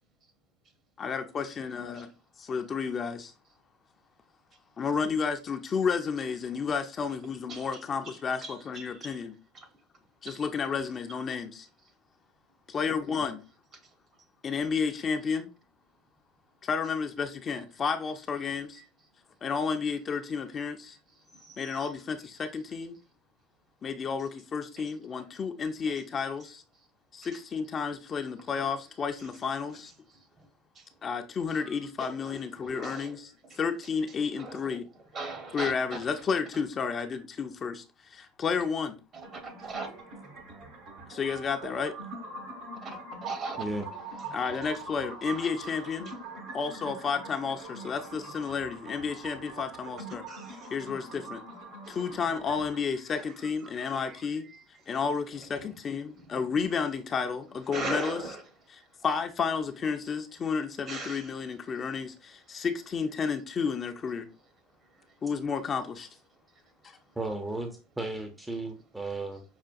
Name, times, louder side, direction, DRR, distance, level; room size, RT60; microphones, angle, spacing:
voice 1, 1.0-2.1 2.4-3.3 4.8-9.3 10.2-11.7 12.7-13.4 14.4-15.5 16.6-18.8 19.4-21.0 21.6-23.0 23.8-26.6 27.1-29.9 31.0-33.3 33.6-34.9 35.5-39.0 41.1-41.9 44.3-46.1 46.5-50.2 50.7-51.4 51.9-54.5 54.9-58.2 59.0-64.3 65.2-66.1 66.8-67.0, left 5 dB, 35° left, 0.5 m, -31 dB
voice 2, 8.0-9.2 9.5-9.7 10.3-10.4 21.3-21.9 24.8-24.9 28.5-28.7 30.7-30.8 31.5-31.7 32.0-32.2 32.8-33.1 33.5-33.6 34.4-34.7 35.1-36.0 39.1-39.9 42.8-43.7 44.6-44.7 45.4-45.5 50.3-50.7 53.2-53.3 53.8-54.6 57.7-58.4 60.9-61.3, right 3 dB, 40° right, 1.1 m, -40 dB
sound 1, 39.2-52.8, right 2 dB, 65° right, 1.3 m, -43 dB
voice 3, 43.5-43.9 67.2-69.4, right 2 dB, 10° right, 0.6 m, -35 dB
5.6 x 2.2 x 2.5 m
supercardioid pair, 95°, 0 cm